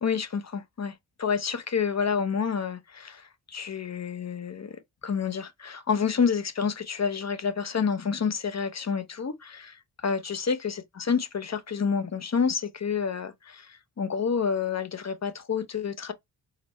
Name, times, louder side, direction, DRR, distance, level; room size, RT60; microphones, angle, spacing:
voice 1, 0.0-0.9 1.2-4.8 5.0-16.1, left 6 dB, 35° left, 0.9 m, -29 dB
4.0 x 2.1 x 4.1 m
supercardioid pair, 40°, 46 cm